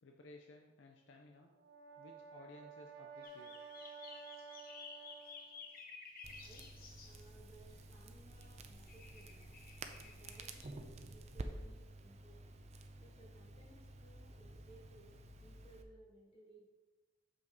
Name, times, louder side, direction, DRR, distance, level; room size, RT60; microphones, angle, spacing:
voice 1, 0.0-1.5 2.0-3.7, left 2 dB, 70° left, 2 dB, 0.6 m, -58 dB
Brass instrument, 1.4-5.7, right 5 dB, 60° right, 0.9 m, -53 dB
sound 1, 3.2-7.2 8.4-8.5 8.8-10.7, left 4 dB, 50° left, 0.9 m, -54 dB
Crackle, 6.2-15.8, right 2 dB, 35° right, 0.5 m, -51 dB
voice 2, 6.3-6.7 7.0-9.5 9.9-12.5 13.0-16.6, right 2 dB, 30° left, -5 dB, 2.2 m, -62 dB
6.8 x 5.8 x 4.0 m, 1.2 s
head